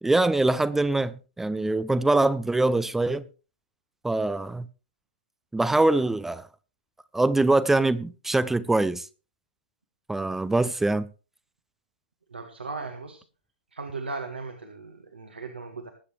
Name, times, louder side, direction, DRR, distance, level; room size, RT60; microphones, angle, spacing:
voice 1, 0.0-3.3 4.0-4.7 5.5-6.5 7.1-9.1 10.1-11.1, right 2 dB, 5° right, 0.5 m, -23 dB
voice 2, 12.3-13.2 13.7-15.9, right 3 dB, 80° right, 1.7 m, -37 dB
21.0 x 8.4 x 3.2 m
figure-of-eight pair, 110°, 6 cm